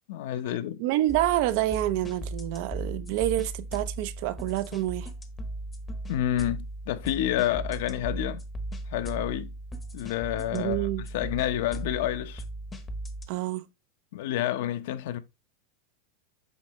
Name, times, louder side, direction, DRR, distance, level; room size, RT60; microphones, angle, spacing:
voice 1, 0.1-0.8 6.1-8.4 8.9-9.5 9.9-12.4 14.1-15.2, left 12 dB, 60° left, 0.9 m, -29 dB
voice 2, 0.8-5.1 10.5-11.0 13.3-13.6, right 14 dB, 45° right, 0.6 m, -27 dB
sound 1, 1.1-13.3, right 1 dB, 10° left, 0.9 m, -37 dB
8.2 x 5.5 x 3.1 m
supercardioid pair, 170°, 0 cm